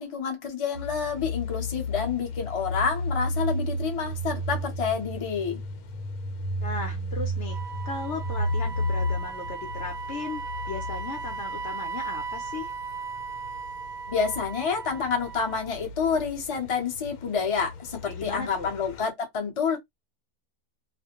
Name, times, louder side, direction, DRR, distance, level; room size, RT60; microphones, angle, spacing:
voice 1, 0.0-5.6 14.1-19.8, left 6 dB, 35° left, 0.5 m, -28 dB
sound 1, 0.7-19.0, left 1 dB, 80° left, 1.1 m, -34 dB
voice 2, 6.6-7.6 7.8-10.4 10.7-12.7 18.1-18.7, left 4 dB, 60° left, 0.8 m, -36 dB
Wind instrument woodwind instrument, 7.5-15.7, right 5 dB, 70° right, 0.8 m, -37 dB
2.4 x 2.1 x 2.8 m
omnidirectional pair, 1.6 m